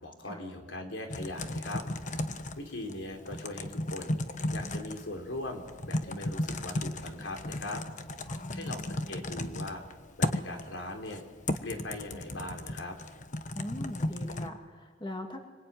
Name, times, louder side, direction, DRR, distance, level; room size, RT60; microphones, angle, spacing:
voice 1, 0.0-1.8 2.6-4.2 4.5-7.8 8.5-9.8 10.2-11.2 11.6-13.0, left 1 dB, 80° left, 4 dB, 4.4 m, -40 dB
Typing, 1.1-14.5, left 1 dB, 40° left, 1.3 m, -35 dB
voice 2, 8.3-8.9 13.5-15.4, left 1 dB, 25° left, 4 dB, 2.1 m, -41 dB
25.5 x 25.5 x 9.3 m, 1.5 s
head